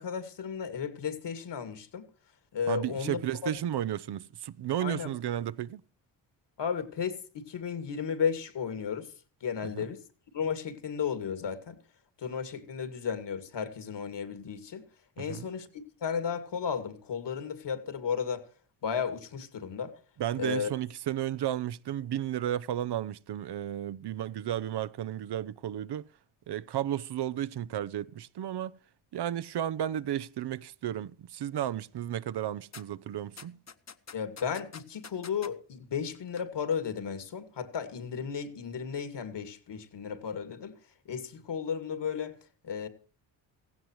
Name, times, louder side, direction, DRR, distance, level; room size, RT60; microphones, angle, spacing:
voice 1, 0.0-2.1 2.5-3.5 4.8-5.1 6.6-9.1 9.4-10.0 10.3-11.8 12.2-14.8 15.2-18.5 18.8-19.9 20.4-20.7 34.1-40.8 41.1-42.3 42.6-42.9, left 7 dB, 60° left, 2.4 m, -34 dB
voice 2, 2.7-5.8 9.6-9.9 15.2-15.5 20.2-26.1 26.5-28.8 29.1-33.6, right 11 dB, 60° right, 0.7 m, -33 dB
sound 1, 32.7-32.8 33.4-35.5 36.1-36.4 36.7-36.8, left 6 dB, 35° left, 1.2 m, -46 dB
16.5 x 16.0 x 3.1 m
supercardioid pair, 60°, 47 cm